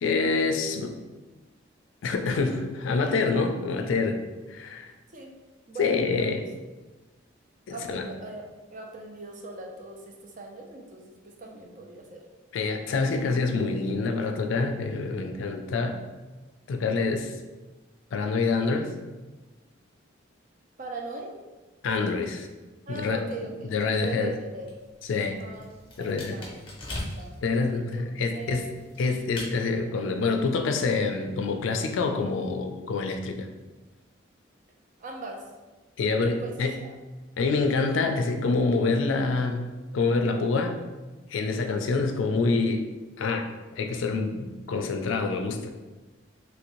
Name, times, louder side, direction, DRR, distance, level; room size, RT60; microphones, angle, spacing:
voice 1, 0.0-0.9 2.0-4.2 4.5-4.9 5.8-6.4 7.7-8.0 12.5-16.0 16.7-17.3 18.1-18.9 21.8-22.5 22.9-23.2 23.7-24.3 25.1-25.4 26.0-26.4 27.4-28.7 29.0-33.5 36.0-36.8 37.4-39.7 39.9-40.8 41.3-42.8 43.2-43.5 43.8-45.7, left 4 dB, 75° left, 6 dB, 0.3 m, -26 dB
voice 2, 5.7-6.3 7.7-8.4 8.7-12.2 20.8-21.3 22.9-23.7 23.9-24.7 25.4-25.7 26.0-27.3 27.9-28.0 28.3-28.8 35.0-35.4 36.1-36.5 36.8-36.9, right 3 dB, 40° right, 1 dB, 0.4 m, -40 dB
sound 1, 24.6-27.4 28.2-29.5, left 1 dB, 25° left, 0.7 m, -40 dB
3.1 x 2.6 x 2.9 m, 1.2 s
head